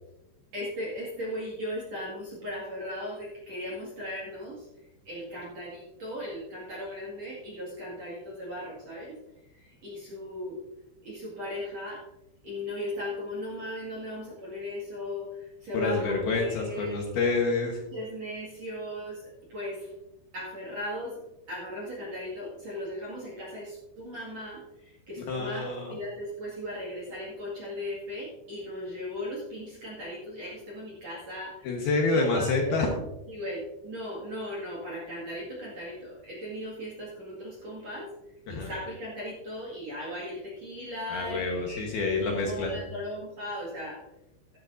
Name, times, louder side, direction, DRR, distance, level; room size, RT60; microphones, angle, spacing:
voice 1, 0.5-4.6 5.1-9.2 9.8-10.6 11.0-12.0 12.4-17.0 17.9-19.2 19.5-19.9 20.3-21.2 21.5-24.6 25.1-31.7 32.1-32.8 33.3-38.1 38.5-41.9 42.2-44.0, left 1 dB, 50° right, -4 dB, 2.2 m, -37 dB
voice 2, 15.7-17.8 25.3-25.9 31.6-32.9 38.5-38.7 41.1-42.8, left 3 dB, 65° left, 0 dB, 2.6 m, -27 dB
14.0 x 11.5 x 2.6 m, 0.97 s
omnidirectional pair, 5.7 m